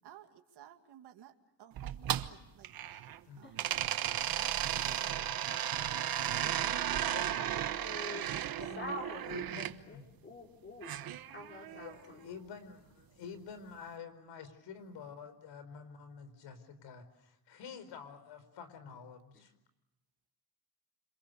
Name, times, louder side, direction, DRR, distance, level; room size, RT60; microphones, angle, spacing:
voice 1, 0.0-1.3 1.6-2.7 3.4-4.0 4.3-5.4 6.2-8.6, right 11 dB, 70° right, 5 dB, 2.4 m, -55 dB
sound 1, 1.8-3.2 3.6-9.7 10.8-12.0, right 11 dB, 55° right, 1.3 m, -35 dB
voice 2, 2.9-3.4 5.7-5.9 7.1-10.0 11.7-19.5, left 6 dB, 90° left, 11 dB, 4.9 m, -49 dB
voice 3, 6.4-7.2 7.5-8.3 8.8-9.2 9.9-11.0 11.3-12.2 19.3-19.4, left 1 dB, 25° left, -1 dB, 5.0 m, -46 dB
29.5 x 27.0 x 6.9 m, 0.87 s
cardioid pair, 160°, 42 cm